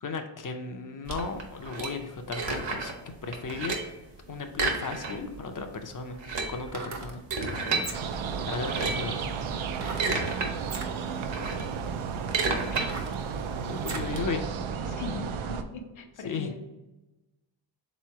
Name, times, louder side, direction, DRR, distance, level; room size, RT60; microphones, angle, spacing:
voice 1, 0.0-2.9 3.2-3.8 4.3-6.2 6.5-7.2 8.5-9.3 13.7-14.4 16.2-16.5, left 4 dB, 40° left, 6 dB, 0.6 m, -35 dB
sound 1, 1.1-3.0 3.3-4.0 4.5-5.4 5.7-5.8 6.1-7.9 8.5-9.1 9.7-10.5 10.9-14.2, right 3 dB, 65° right, 1.0 m, -31 dB
sound 2, 6.6-7.2 7.7-8.3 9.8-10.1 10.6-10.9 11.7-11.8 12.3-14.2 14.6-14.7, right 4 dB, 35° right, 0.6 m, -39 dB
sound 3, 7.9-15.6, right 6 dB, 85° right, 0.5 m, -33 dB
voice 2, 10.1-10.9 12.7-14.4 14.8-16.6, left 4 dB, 70° left, 5 dB, 0.8 m, -43 dB
3.7 x 3.1 x 4.6 m, 1.1 s
cardioid pair, 95°, 48 cm